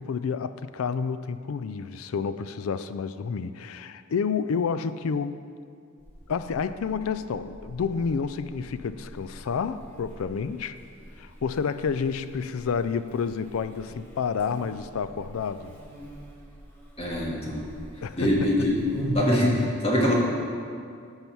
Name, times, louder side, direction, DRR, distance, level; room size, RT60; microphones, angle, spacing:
voice 1, 0.0-5.4 6.3-10.8 11.2-15.7 18.0-18.3, left 6 dB, 85° left, 12 dB, 0.4 m, -29 dB
Buzz, 6.0-19.1, right 1 dB, 10° left, 1.4 m, -44 dB
voice 2, 17.0-17.6 18.1-18.7 19.1-20.1, left 1 dB, 30° left, -3 dB, 1.7 m, -23 dB
13.5 x 5.7 x 4.6 m, 2.3 s
head